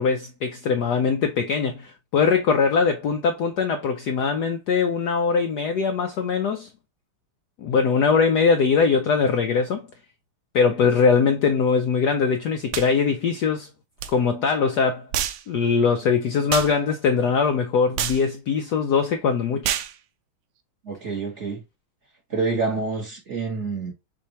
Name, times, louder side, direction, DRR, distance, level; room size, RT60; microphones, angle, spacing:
voice 1, 0.0-6.7 7.6-9.8 10.5-13.7 14.1-15.1 15.5-19.7, left 5 dB, 70° left, 1.0 m, -21 dB
sound 1, 12.7-12.9 14.0-14.1 15.1-15.4 16.5-16.7 18.0-18.2 19.6-19.9, right 10 dB, 90° right, 1.5 m, -27 dB
voice 2, 20.8-21.6 22.3-23.9, right 4 dB, 35° right, 1.5 m, -27 dB
6.4 x 2.7 x 2.8 m
omnidirectional pair, 2.3 m